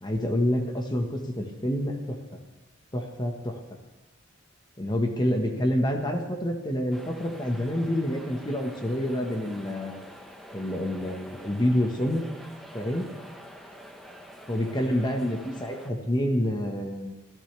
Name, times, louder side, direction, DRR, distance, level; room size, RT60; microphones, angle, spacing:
voice 1, 0.0-2.2 2.9-3.6 4.8-10.0 10.5-12.3 12.7-13.1 14.5-17.2, equal, 20° left, 3 dB, 1.4 m, -27 dB
sound 1, 6.9-15.9, equal, ahead, 1.3 m, -46 dB
26.0 x 14.0 x 3.4 m, 1.1 s
head